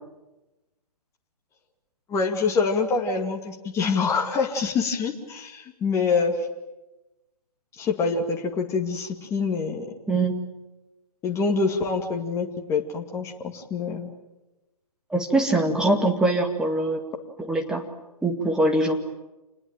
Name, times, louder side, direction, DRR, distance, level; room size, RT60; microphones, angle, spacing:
voice 1, 2.1-6.4 7.8-9.9 11.2-14.1, left 4 dB, 15° left, 2 dB, 2.3 m, -25 dB
voice 2, 10.1-10.4 15.1-17.0 17.5-17.8 18.2-19.0, right 2 dB, 5° right, 2 dB, 2.1 m, -22 dB
28.0 x 20.5 x 9.0 m, 1.0 s
figure-of-eight pair, 130°, 20 cm